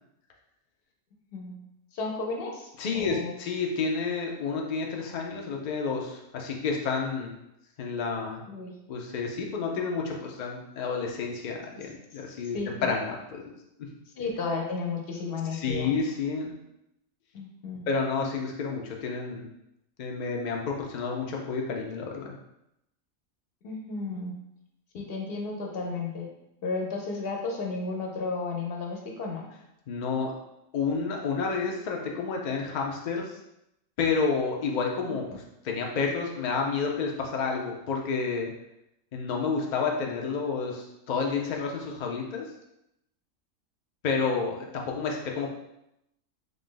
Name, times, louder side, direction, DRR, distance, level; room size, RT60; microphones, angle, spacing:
voice 1, 1.9-3.4 8.5-8.7 12.5-12.9 14.1-15.9 17.3-17.9 23.6-24.3 24.9-26.3 26.6-29.5 35.1-35.4, left 3 dB, 55° left, 0 dB, 0.8 m, -33 dB
voice 2, 2.8-7.3 7.8-8.4 8.9-13.4 13.8-13.9 15.5-16.5 17.9-19.5 20.0-22.3 29.9-30.3 30.7-33.4 34.0-38.5 39.1-42.4 44.0-45.5, left 5 dB, 75° left, 0 dB, 0.4 m, -30 dB
3.2 x 2.6 x 3.7 m, 0.84 s
omnidirectional pair, 1.4 m